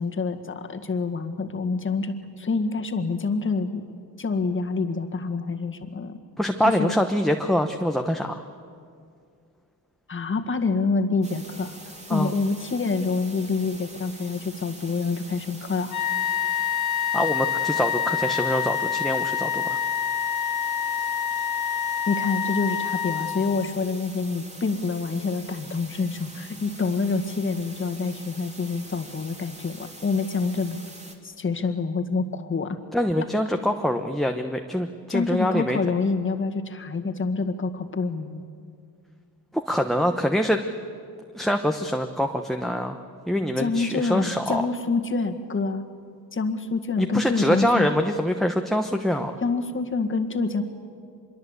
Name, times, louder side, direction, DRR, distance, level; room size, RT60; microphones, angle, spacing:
voice 1, 0.0-3.8 4.2-6.2 6.8-6.9 10.1-11.8 12.1-16.0 22.1-30.8 31.2-32.8 35.1-38.4 43.6-45.8 46.3-47.9 49.4-50.6, left 4 dB, 35° left, 6 dB, 1.8 m, -27 dB
voice 2, 6.4-8.4 12.1-12.3 17.1-19.8 32.9-35.8 39.7-40.6 41.3-43.0 43.3-44.7 47.0-49.4, equal, ahead, 4 dB, 1.0 m, -24 dB
sound 1, 11.2-31.1, right 1 dB, 20° right, 2.9 m, -44 dB
sound 2, 15.9-23.8, left 9 dB, 75° left, 2.3 m, -27 dB
25.5 x 22.5 x 8.2 m, 2.3 s
cardioid pair, 110°, 36 cm